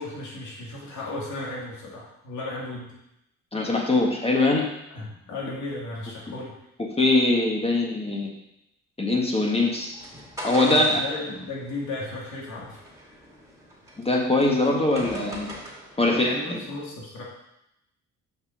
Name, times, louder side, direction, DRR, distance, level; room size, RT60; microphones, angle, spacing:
voice 1, 0.0-2.9 4.9-6.5 10.6-12.8 16.0-17.2, left 2 dB, 70° left, -3 dB, 2.5 m, -35 dB
voice 2, 3.5-4.7 7.0-8.3 9.0-9.9 10.4-11.0 14.1-15.5 16.0-16.3, left 2 dB, 20° left, 0 dB, 1.7 m, -22 dB
sound 1, 9.4-16.1, equal, 10° right, 2.2 m, -40 dB
6.5 x 5.3 x 5.1 m, 0.84 s
cardioid pair, 90°, 30 cm